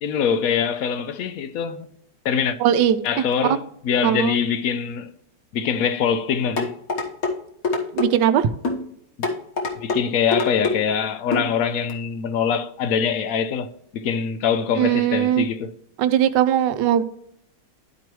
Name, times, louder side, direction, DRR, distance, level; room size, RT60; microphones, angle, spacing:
voice 1, 0.0-1.9 2.2-2.6 3.0-5.1 5.5-6.8 9.8-15.7, left 7 dB, 70° left, 0.8 m, -23 dB
voice 2, 2.6-3.0 4.0-4.3 7.9-8.5 14.8-15.4 16.0-17.0, right 10 dB, 80° right, 1.2 m, -19 dB
sound 1, 6.6-7.3 7.6-8.1 8.6-8.8 9.2-10.0 10.3-10.8 11.3-11.5 11.9-12.0, left 3 dB, 55° left, 1.7 m, -23 dB
12.0 x 4.6 x 3.0 m
omnidirectional pair, 1.9 m